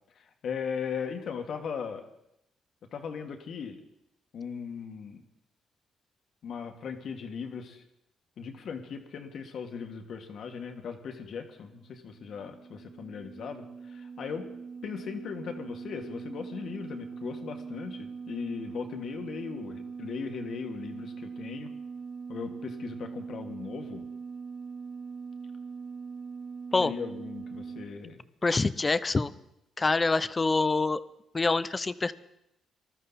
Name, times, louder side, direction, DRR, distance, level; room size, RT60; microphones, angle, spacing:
voice 1, 0.2-2.0 2.9-3.8 4.3-5.2 6.4-7.8 8.4-14.5 14.8-21.7 22.3-24.1 26.8-28.2, left 6 dB, 65° left, 5 dB, 1.8 m, -38 dB
sound 1, 11.7-27.8, right 5 dB, 35° right, 3.8 m, -41 dB
voice 2, 28.4-29.3 29.8-31.0 31.3-32.1, left 3 dB, 25° left, 16 dB, 0.6 m, -25 dB
20.0 x 13.0 x 4.2 m, 0.82 s
cardioid pair, 90°, 0 cm